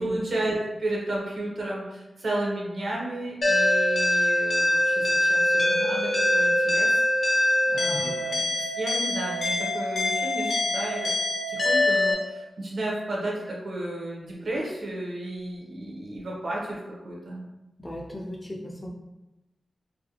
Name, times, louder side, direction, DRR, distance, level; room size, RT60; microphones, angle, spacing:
voice 1, 0.0-7.0 7.7-11.0 11.5-17.5, right 1 dB, 60° right, -3 dB, 0.7 m, -33 dB
sound 1, 3.4-12.1, left 1 dB, 55° left, 0.6 m, -23 dB
voice 2, 17.8-18.9, equal, 15° left, -2 dB, 0.4 m, -36 dB
2.4 x 2.1 x 2.8 m, 0.99 s
wide cardioid pair, 135°, 0 cm